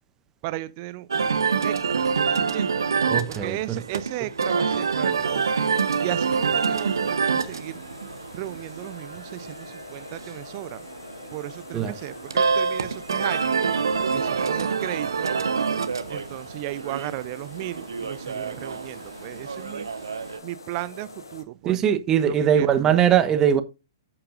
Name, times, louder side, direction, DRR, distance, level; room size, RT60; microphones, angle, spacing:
voice 1, 0.4-2.8 3.3-5.5 6.0-7.8 8.3-10.8 11.3-13.6 14.1-15.3 16.1-19.9 20.4-21.8 22.2-22.8, right 17 dB, 35° right, 0.6 m, -35 dB
sound 1, 1.1-20.4, right 5 dB, 65° right, 1.2 m, -27 dB
voice 2, 3.1-3.8 11.7-12.0 21.6-23.6, right 9 dB, 20° right, 1.0 m, -21 dB
sound 2, 5.1-21.4, left 3 dB, 70° left, 2.2 m, -44 dB
11.5 x 8.8 x 2.6 m
figure-of-eight pair, 115°, 2 cm